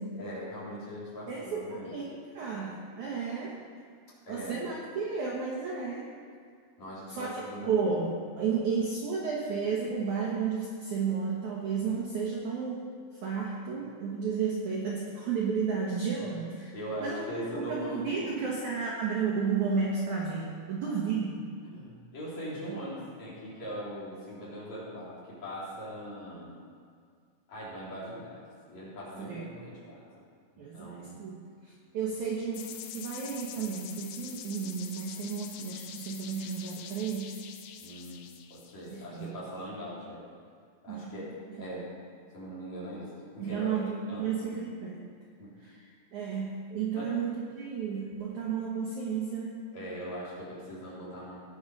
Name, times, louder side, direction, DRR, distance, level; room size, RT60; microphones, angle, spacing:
voice 1, 0.1-1.9 4.3-4.6 6.8-7.9 8.5-8.6 16.7-18.4 20.8-21.0 21.6-26.5 27.5-28.4 28.7-30.2 30.5-31.2 37.8-38.3 38.5-40.3 40.8-41.9 42.3-43.7 44.1-44.6 45.4-45.6 46.9-47.2 49.7-51.4, equal, 40° left, -9 dB, 4.3 m, -41 dB
voice 2, 1.3-3.5 4.3-6.0 7.1-12.9 13.2-16.7 17.0-17.2 17.5-21.5 29.2-29.4 30.6-31.4 31.9-32.7 32.9-37.4 38.9-39.3 40.9-41.1 43.4-45.0 45.6-49.5, right 5 dB, 80° right, -3 dB, 1.7 m, -32 dB
sound 1, 32.5-39.3, left 9 dB, 80° left, 2.4 m, -45 dB
18.5 x 6.6 x 5.5 m, 2.1 s
omnidirectional pair, 5.5 m